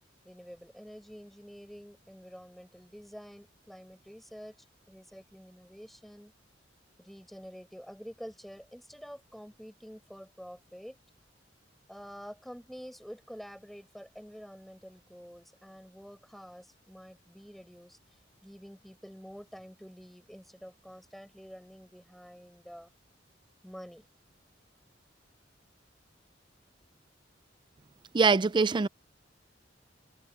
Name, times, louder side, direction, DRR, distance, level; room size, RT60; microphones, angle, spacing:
voice 1, 0.2-4.6 4.9-6.3 7.0-11.0 11.9-18.0 18.4-22.9 23.6-24.1, equal, ahead, 5.4 m, -48 dB
voice 2, 28.1-28.9, right 4 dB, 25° right, 0.4 m, -23 dB
head